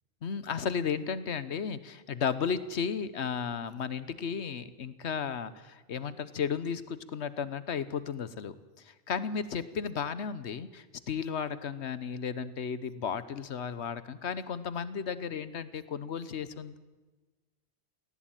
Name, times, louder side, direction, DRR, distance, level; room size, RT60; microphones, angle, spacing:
voice 1, 0.2-16.8, left 6 dB, 85° left, 15 dB, 1.3 m, -34 dB
18.5 x 16.0 x 9.0 m, 1.2 s
omnidirectional pair, 1.1 m